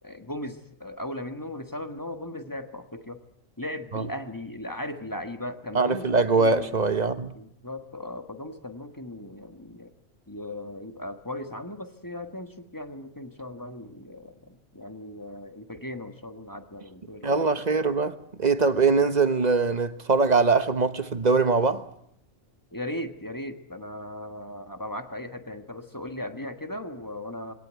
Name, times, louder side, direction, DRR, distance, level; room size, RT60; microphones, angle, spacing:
voice 1, 0.0-3.2 3.6-6.8 7.3-9.9 10.3-17.9 22.7-27.5, left 1 dB, 15° left, 1.4 m, -37 dB
voice 2, 5.7-7.3 17.2-21.8, right 4 dB, 35° right, 1.2 m, -22 dB
23.0 x 18.0 x 9.4 m
omnidirectional pair, 1.4 m